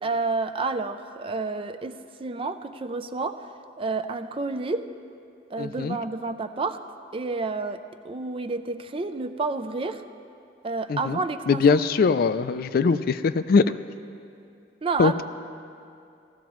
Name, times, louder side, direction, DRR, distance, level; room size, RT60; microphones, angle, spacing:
voice 1, 0.0-3.5 3.8-4.9 5.5-6.8 7.1-7.8 8.0-10.0 10.6-11.8 12.6-12.7 14.8-15.2, right 3 dB, 30° right, 8 dB, 0.4 m, -30 dB
voice 2, 5.6-6.0 10.9-11.2 11.5-13.7 15.0-15.2, left 5 dB, 50° left, 12 dB, 0.3 m, -21 dB
17.0 x 14.0 x 3.1 m, 2.5 s
head